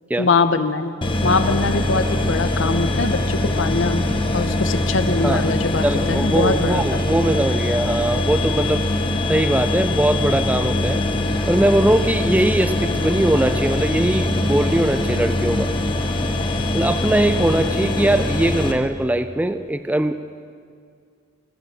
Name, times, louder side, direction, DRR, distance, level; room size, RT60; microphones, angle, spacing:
voice 1, 0.2-0.9 1.2-4.0 4.3-7.0, left 3 dB, 65° left, 11 dB, 0.7 m, -22 dB
sound 1, 1.0-18.7, left 2 dB, 25° left, 0.9 m, -22 dB
voice 2, 5.8-8.8 9.3-11.0 11.5-15.7 16.7-20.2, right 1 dB, 10° right, 10 dB, 0.3 m, -20 dB
19.5 x 7.6 x 6.3 m, 2.2 s
head